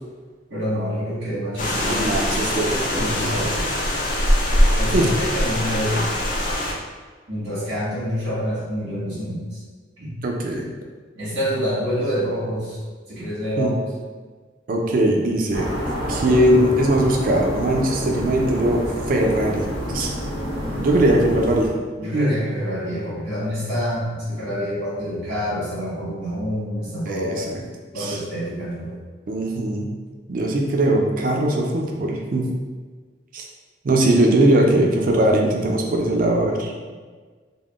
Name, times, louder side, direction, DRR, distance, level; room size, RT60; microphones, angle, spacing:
voice 1, 0.5-2.1 2.7-3.7 4.8-6.2 7.3-9.6 10.0-10.2 11.1-12.8 13.1-13.8 22.0-27.5 27.9-29.0, equal, 85° right, -9 dB, 1.4 m, -27 dB
sound 1, 1.6-6.7, left 1 dB, 45° left, 0.4 m, -22 dB
voice 2, 1.9-3.5 4.9-5.1 10.2-10.7 13.6-13.7 14.7-15.7 16.1-18.8 19.1-20.1 20.8-21.7 22.1-22.4 27.1-27.6 28.0-28.2 29.3-29.9 30.3-32.5 33.3-33.5 33.8-36.7, right 1 dB, 45° right, 1 dB, 0.4 m, -20 dB
sound 2, 15.5-21.7, equal, 85° left, 0.8 m, -28 dB
3.5 x 2.1 x 2.3 m, 1.5 s
head